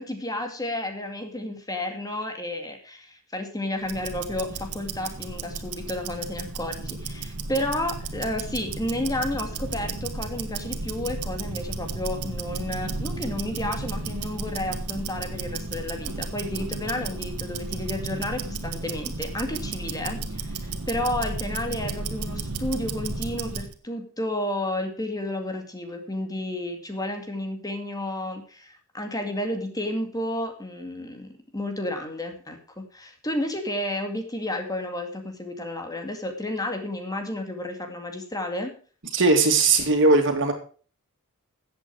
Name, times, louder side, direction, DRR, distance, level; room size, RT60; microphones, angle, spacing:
voice 1, 0.0-38.7, left 1 dB, 15° left, 5 dB, 2.1 m, -31 dB
Tick-tock, 3.8-23.7, right 3 dB, 90° right, 1.5 m, -33 dB
voice 2, 39.1-40.5, right 3 dB, 60° right, 4 dB, 2.7 m, -19 dB
14.0 x 8.6 x 4.7 m, 0.40 s
head